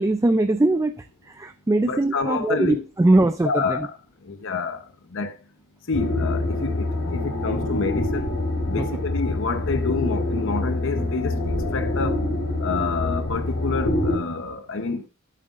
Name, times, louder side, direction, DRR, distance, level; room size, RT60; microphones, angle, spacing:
voice 1, 0.0-3.9 8.8-8.9, right 2 dB, 15° right, 0.3 m, -21 dB
voice 2, 1.8-2.8 3.4-3.9 4.2-5.4 5.9-8.3 8.7-12.2 12.6-15.1, left 4 dB, 60° left, 0.8 m, -28 dB
sound 1, 5.9-14.2, left 2 dB, 80° left, 2.9 m, -26 dB
13.0 x 7.4 x 2.5 m
head